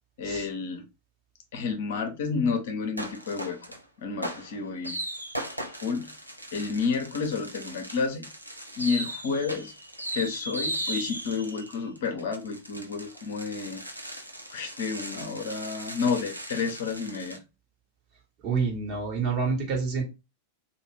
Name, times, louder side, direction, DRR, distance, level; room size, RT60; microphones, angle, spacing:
voice 1, 0.2-0.8 1.5-3.6 4.0-5.0 5.8-6.1 6.5-8.2 8.8-9.7 10.1-13.8 14.5-17.4, left 5 dB, 55° left, 5 dB, 0.7 m, -30 dB
sound 1, 3.0-3.8 4.2-17.4, right 1 dB, 90° right, 0.5 m, -37 dB
voice 2, 18.4-20.0, right 5 dB, 40° right, 0 dB, 1.2 m, -28 dB
2.5 x 2.3 x 3.3 m, 0.26 s
figure-of-eight pair, 90°, 0 cm